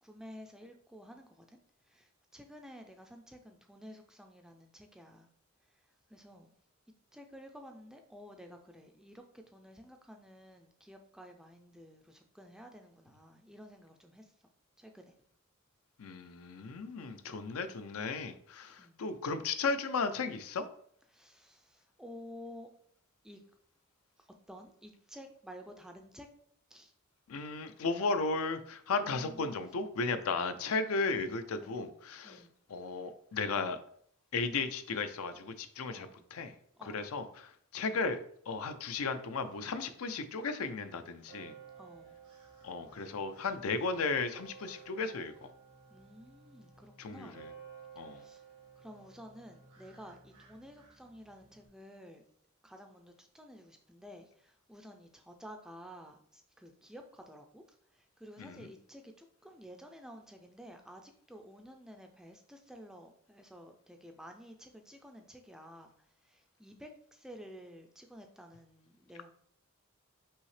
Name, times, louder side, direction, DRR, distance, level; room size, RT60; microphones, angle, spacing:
voice 1, 0.0-5.3 5.6-6.5 7.1-14.3 14.8-15.1 18.8-19.1 21.1-22.7 23.2-23.4 24.2-26.3 26.7-26.9 28.9-29.6 31.6-31.9 32.2-32.6 35.9-36.2 36.8-37.1 41.8-42.2 45.9-47.4 48.0-48.5 48.8-52.2 52.6-69.3, equal, 5° right, 4 dB, 0.3 m, -52 dB
voice 2, 16.0-20.6 27.3-32.4 32.7-33.8 34.3-36.5 36.8-38.2 38.5-41.5 42.6-45.5 47.0-47.5 48.0-48.2 58.4-58.7, left 4 dB, 75° left, 10 dB, 0.4 m, -35 dB
sound 1, 41.2-51.7, right 6 dB, 90° right, 1.4 m, -55 dB
5.4 x 2.8 x 3.2 m, 0.63 s
head